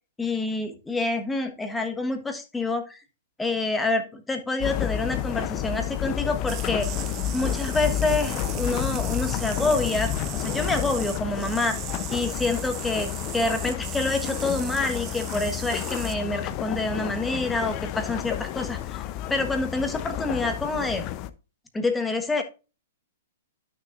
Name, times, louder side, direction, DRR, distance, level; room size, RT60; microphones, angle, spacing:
voice 1, 0.2-3.0 3.4-6.9 7.3-11.8 12.1-13.1 13.3-19.0 19.3-21.0 21.7-22.4, left 3 dB, 10° left, 6 dB, 1.3 m, -27 dB
sound 1, 4.6-21.3, left 12 dB, 35° left, 0.7 m, -30 dB
sound 2, 6.5-16.2, right 16 dB, 35° right, 0.5 m, -38 dB
11.5 x 6.3 x 2.5 m, 0.31 s
hypercardioid pair, 135°, 0 cm